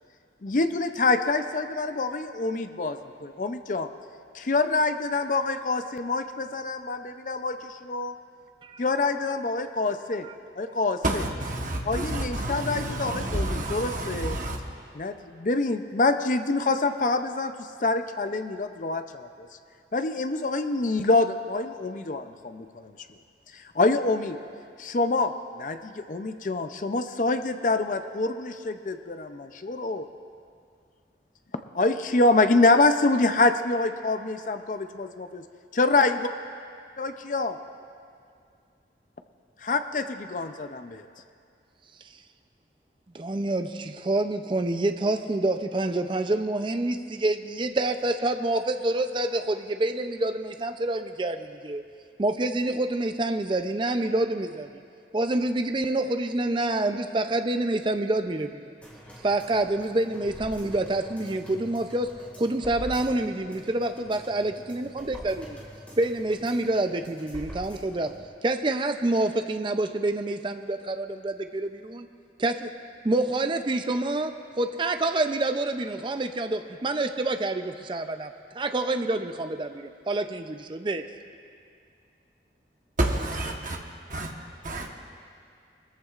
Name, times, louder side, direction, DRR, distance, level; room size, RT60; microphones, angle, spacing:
voice 1, 0.4-3.9 4.3-8.1 8.8-10.3 10.6-11.0 11.9-14.4 15.0-19.5 19.9-22.9 23.5-24.4 24.8-30.1 31.7-35.4 35.7-36.3 37.0-37.6 39.6-41.1, left 3 dB, 45° left, 9 dB, 0.5 m, -26 dB
voice 2, 11.0-14.6 83.0-83.8 84.1-84.3 84.6-84.9, right 1 dB, 45° right, 1 dB, 1.2 m, -29 dB
voice 3, 43.1-51.8 52.2-54.7 55.1-58.7 59.2-62.1 62.4-65.6 66.0-68.1 68.4-72.1 72.4-72.7 73.0-81.0, right 2 dB, 30° right, 8 dB, 0.5 m, -27 dB
sound 1, 58.8-68.2 68.6-68.7, equal, 10° left, 1.9 m, -44 dB
21.0 x 14.0 x 2.5 m, 2.3 s
head